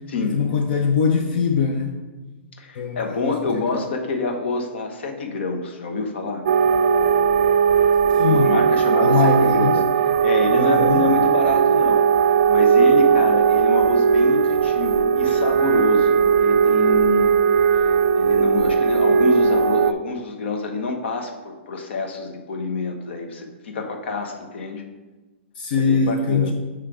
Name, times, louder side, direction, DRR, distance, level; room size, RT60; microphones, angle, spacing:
voice 1, 0.2-2.0 2.7-3.9 8.1-8.6 9.0-9.8 10.5-11.1 25.6-26.5, left 5 dB, 45° left, 4 dB, 0.5 m, -22 dB
voice 2, 2.6-6.4 8.2-9.8 10.2-12.0 12.5-17.4 18.1-24.8 25.8-26.5, left 4 dB, 65° left, 4 dB, 1.1 m, -27 dB
sound 1, 6.5-19.9, right 6 dB, 55° right, 0.3 m, -18 dB
8.3 x 3.3 x 4.9 m, 1.2 s
hypercardioid pair, 170°, 7 cm